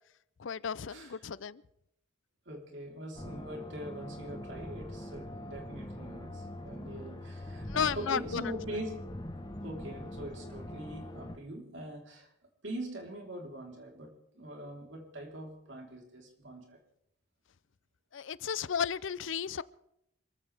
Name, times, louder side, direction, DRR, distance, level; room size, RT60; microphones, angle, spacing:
voice 1, 0.4-1.6 7.7-8.4 18.1-19.6, left 7 dB, 70° left, 19 dB, 0.5 m, -33 dB
voice 2, 2.5-9.0 9.6-12.3 12.6-16.8, right 1 dB, 60° right, 1 dB, 3.9 m, -43 dB
sound 1, 3.1-11.4, left 1 dB, 20° left, 1.0 m, -43 dB
26.5 x 14.5 x 3.5 m, 0.79 s
head